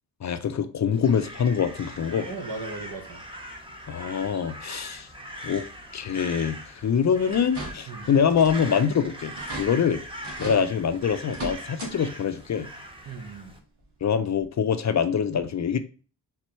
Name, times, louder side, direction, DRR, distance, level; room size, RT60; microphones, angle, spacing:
voice 1, 0.2-2.3 3.9-5.1 5.4-5.6 5.9-9.3 9.6-10.0 10.4-12.7 14.0-15.8, left 7 dB, 45° left, 0.5 m, -24 dB
Crow, 0.9-13.6, right 1 dB, 15° right, 1.0 m, -41 dB
voice 2, 2.1-3.2 7.9-8.1 10.4-10.7 13.1-13.5, right 3 dB, 60° right, 1.1 m, -37 dB
sound 1, 7.3-8.0 8.3-8.7 9.0-9.1 9.3-9.7 10.2-10.6 11.2-11.9 12.3-12.4 13.8-13.9 14.4-14.5, right 3 dB, 85° right, 1.6 m, -37 dB
4.5 x 3.6 x 3.0 m
cardioid pair, 65°, 40 cm